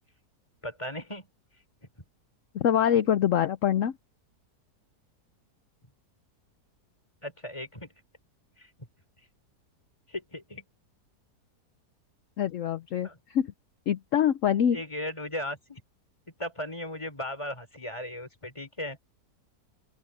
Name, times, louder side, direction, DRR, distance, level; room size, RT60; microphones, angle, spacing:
voice 1, 0.6-1.3 7.2-7.9 8.6-8.7 10.1-10.6 13.0-13.2 14.7-15.8 16.4-19.0, left 1 dB, 20° left, 4.9 m, -37 dB
voice 2, 2.5-3.9 12.4-13.5 13.9-14.8, left 9 dB, 60° left, 1.0 m, -25 dB
open air
omnidirectional pair, 1.7 m